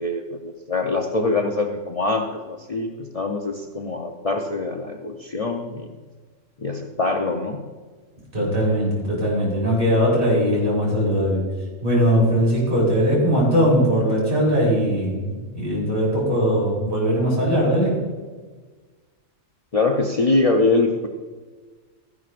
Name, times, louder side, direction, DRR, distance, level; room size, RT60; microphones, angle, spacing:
voice 1, 0.0-6.0 6.6-7.6 19.7-21.1, left 3 dB, 40° left, 2 dB, 0.6 m, -23 dB
voice 2, 8.3-11.4 11.8-18.0, equal, 45° right, -4 dB, 3.7 m, -20 dB
14.5 x 11.0 x 2.5 m, 1.4 s
omnidirectional pair, 1.3 m